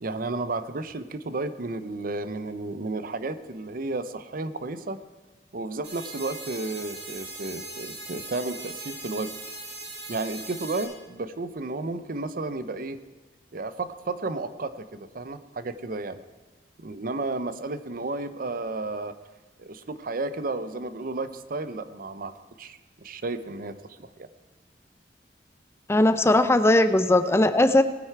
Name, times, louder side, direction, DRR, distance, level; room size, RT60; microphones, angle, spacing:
voice 1, 0.0-5.0 5.5-9.3 10.1-13.0 13.5-16.2 16.8-19.1 19.6-22.3 22.6-24.3, right 3 dB, 55° right, 12 dB, 0.7 m, -32 dB
sound 1, 5.8-10.8, right 2 dB, 75° right, 4.7 m, -39 dB
voice 2, 25.9-27.8, left 1 dB, 15° left, 11 dB, 0.5 m, -19 dB
19.5 x 9.4 x 4.6 m, 1.2 s
head